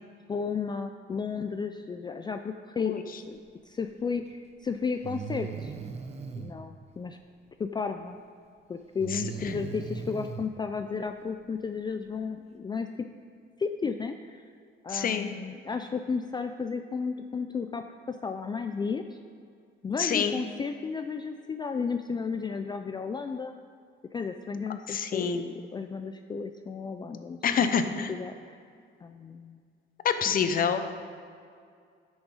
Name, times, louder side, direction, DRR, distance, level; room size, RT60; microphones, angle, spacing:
voice 1, 0.3-3.0 3.3-5.7 6.4-7.2 7.6-8.2 8.7-13.1 13.6-14.5 14.8-19.2 19.8-23.5 24.1-28.6 29.0-29.6 30.3-30.6, left 5 dB, 20° left, 6 dB, 0.3 m, -33 dB
Breathing, 4.2-4.3 5.0-6.5 9.0-10.5, right 6 dB, 30° right, 0.7 m, -38 dB
voice 2, 14.9-15.3 20.0-20.4 24.9-25.4 27.4-28.1 30.0-30.8, left 7 dB, 45° left, 9 dB, 0.7 m, -26 dB
12.0 x 6.3 x 4.9 m, 2.3 s
cardioid pair, 140°, 20 cm